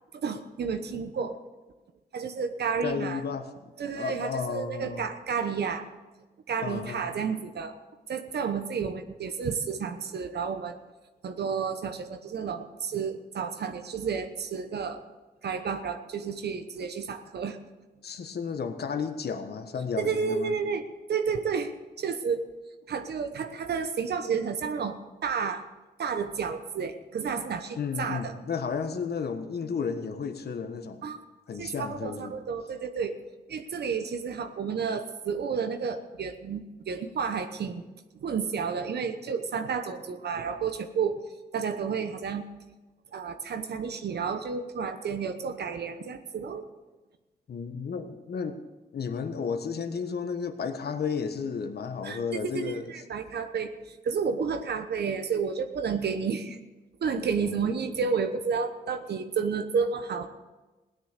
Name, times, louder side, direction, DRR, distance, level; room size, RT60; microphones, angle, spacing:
voice 1, 0.1-1.4 2.1-3.2 3.8-5.8 6.5-7.8 8.1-10.8 11.2-15.0 15.4-17.6 20.0-20.8 21.1-21.7 22.0-22.5 22.9-24.9 25.2-25.6 26.0-28.3 31.0-31.2 31.6-33.2 33.5-37.8 38.2-41.2 41.5-42.4 43.1-46.6 52.0-52.2 52.4-56.6 57.0-60.3, right 6 dB, 70° right, 7 dB, 1.1 m, -31 dB
voice 2, 2.8-5.1 6.6-7.1 18.0-20.6 27.7-31.1 31.5-32.3 47.5-48.6 48.9-52.9 57.4-58.1, left 6 dB, 65° left, 8 dB, 1.4 m, -33 dB
17.0 x 10.0 x 6.7 m, 1.2 s
cardioid pair, 95°, 18 cm